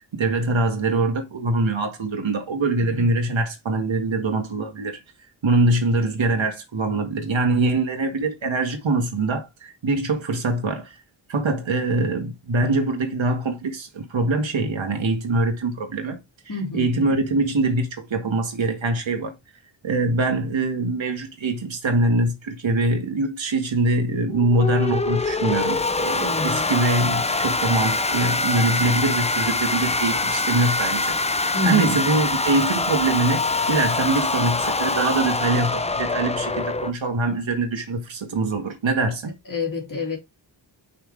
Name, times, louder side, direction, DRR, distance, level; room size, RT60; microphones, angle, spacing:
voice 1, 0.1-5.0 5.4-11.0 11.3-16.2 16.7-19.3 19.8-39.3, right 2 dB, 80° right, 2.0 m, -23 dB
voice 2, 16.5-17.0 26.2-26.7 31.5-32.0 39.5-40.2, left 3 dB, 45° left, 3.0 m, -28 dB
sound 1, 24.3-36.9, left 3 dB, 15° left, 0.5 m, -24 dB
5.9 x 5.8 x 3.4 m
wide cardioid pair, 80°, 45 cm